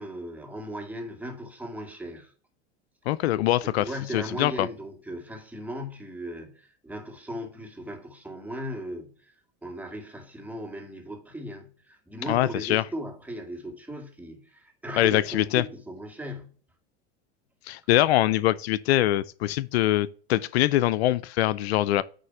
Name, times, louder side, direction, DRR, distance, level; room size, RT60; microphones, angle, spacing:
voice 1, 0.0-2.3 3.6-9.3 9.6-16.6, equal, 5° right, 2.1 m, -37 dB
voice 2, 3.1-4.7 12.3-12.8 15.0-15.6 17.7-22.0, left 14 dB, 85° left, 0.5 m, -23 dB
9.3 x 3.3 x 5.5 m
supercardioid pair, 110°, 31 cm